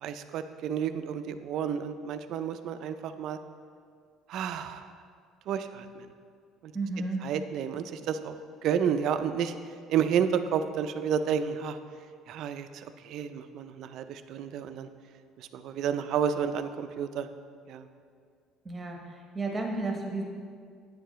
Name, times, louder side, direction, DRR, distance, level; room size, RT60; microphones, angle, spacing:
voice 1, 0.0-3.4 4.3-4.9 5.5-6.1 6.6-6.7 7.2-8.3 8.6-9.5 9.9-11.8 12.3-14.9 15.4-17.3 17.7-17.9, right 8 dB, 50° right, 9 dB, 0.3 m, -31 dB
voice 2, 6.7-7.3 18.6-20.2, right 2 dB, 15° right, 1 dB, 0.8 m, -33 dB
9.3 x 6.7 x 3.1 m, 2.1 s
cardioid pair, 170°, 0 cm